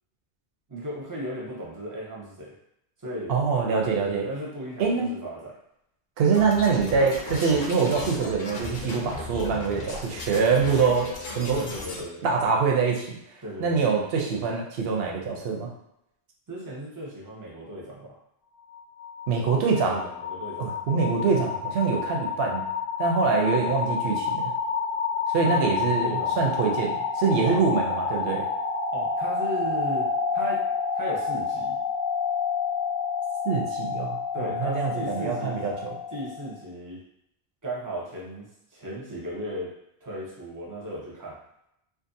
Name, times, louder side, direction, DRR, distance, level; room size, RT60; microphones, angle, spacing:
voice 1, 0.7-2.5 3.0-3.3 4.0-5.5 11.4-12.5 13.4-13.8 16.5-18.2 19.9-20.7 21.1-21.4 23.2-23.8 25.4-26.5 27.4-27.7 28.9-30.6 30.9-31.8 34.3-35.6 36.1-37.0 37.6-39.7 40.0-41.4, right 1 dB, 20° right, -5 dB, 0.6 m, -36 dB
voice 2, 3.3-4.3 4.8-5.1 6.2-11.6 12.2-13.2 13.6-15.7 19.3-20.0 20.6-22.6 23.0-24.5 25.3-28.4 33.4-35.9, right 5 dB, 70° right, 0 dB, 0.8 m, -24 dB
sound 1, 6.3-12.0, left 3 dB, 55° left, 0.6 m, -36 dB
sound 2, 18.6-36.5, left 5 dB, 20° left, 0.8 m, -29 dB
2.6 x 2.4 x 2.6 m, 0.80 s
omnidirectional pair, 1.1 m